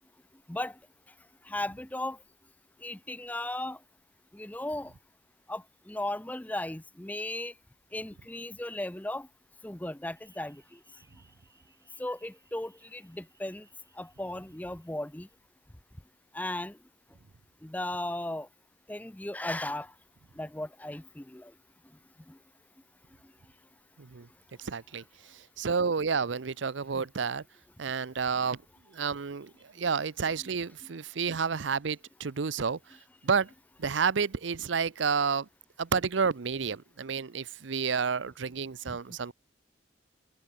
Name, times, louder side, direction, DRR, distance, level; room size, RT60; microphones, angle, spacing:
voice 1, 1.5-2.2 2.8-3.8 4.3-4.9 5.5-7.5 7.9-9.3 9.6-10.6 12.0-13.7 14.0-15.3 16.3-16.8 17.6-18.5 18.9-19.9 20.4-21.5 27.0-27.1 30.4-30.5 38.9-39.0, left 1 dB, 10° left, 0.6 m, -36 dB
sound 1, 10.1-15.4, right 4 dB, 15° right, 6.1 m, -67 dB
voice 2, 24.6-25.0 25.6-27.4 27.8-28.6 28.9-32.8 33.2-33.5 33.8-35.5 35.8-39.3, right 5 dB, 85° right, 0.7 m, -30 dB
open air
head